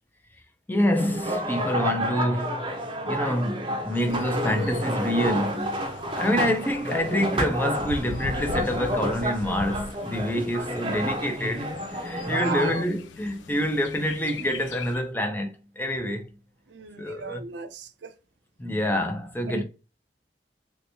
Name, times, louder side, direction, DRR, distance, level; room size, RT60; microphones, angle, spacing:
voice 1, 0.7-2.8 3.1-5.8 6.2-16.3 17.0-17.4 18.6-19.6, equal, 10° left, 0.5 m, -27 dB
sound 1, 0.9-12.7, equal, 30° right, 0.7 m, -30 dB
Bird, 3.9-15.0, left 4 dB, 85° left, 0.4 m, -41 dB
voice 2, 10.4-10.7 12.1-12.8 16.7-18.1 19.5-19.6, right 4 dB, 75° right, 0.5 m, -35 dB
3.2 x 2.8 x 2.8 m
head